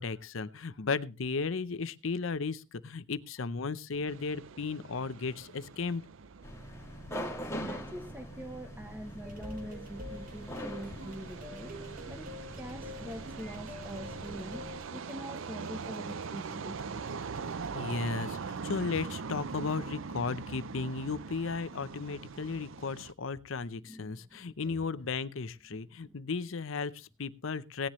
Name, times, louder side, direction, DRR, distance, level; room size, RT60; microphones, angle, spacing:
voice 1, 0.0-6.0 17.7-27.9, left 4 dB, 70° left, 0.7 m, -35 dB
sound 1, 4.1-23.1, right 5 dB, 70° right, 0.5 m, -42 dB
sound 2, 6.4-14.8, equal, 15° left, 1.7 m, -43 dB
voice 2, 7.6-11.7 12.1-16.8 23.7-25.0 26.0-26.2, equal, 10° right, 1.0 m, -44 dB
sound 3, 9.2-18.8, left 2 dB, 40° right, 1.5 m, -49 dB
17.5 x 10.5 x 3.1 m
head